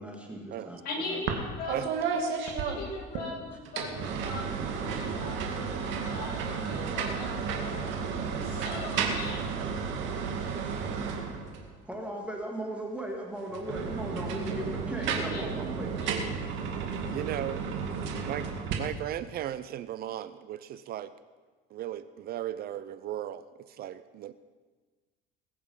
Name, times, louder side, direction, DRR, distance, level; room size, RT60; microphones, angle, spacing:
voice 1, 0.0-0.8 1.1-1.2 3.5-3.6 10.9-11.0 11.5-16.0, right 1 dB, 5° right, 0 dB, 2.0 m, -37 dB
voice 2, 0.8-2.0 2.4-9.4 15.3-15.4 16.0-16.2, left 2 dB, 50° left, -2 dB, 5.8 m, -40 dB
sound 1, 1.3-1.4 1.7-3.2 3.6-11.7 13.5-18.7, right 6 dB, 70° right, 2.2 m, -32 dB
voice 3, 1.7-2.2 17.1-17.6 18.2-18.5 18.8-21.1 21.7-24.3, right 12 dB, 50° right, 14 dB, 0.6 m, -36 dB
20.5 x 8.6 x 5.5 m, 1.3 s
cardioid pair, 135°, 20 cm